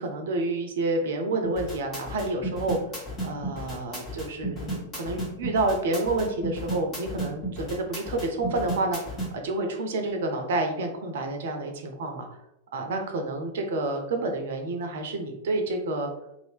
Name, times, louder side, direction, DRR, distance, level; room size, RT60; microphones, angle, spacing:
voice 1, 0.0-2.8 3.2-12.3 12.7-16.1, right 2 dB, 60° right, 4 dB, 0.6 m, -29 dB
sound 1, 1.4-9.3, right 1 dB, 25° left, 1.3 m, -33 dB
2.7 x 2.4 x 3.4 m, 0.88 s
figure-of-eight pair, 95°, 0 cm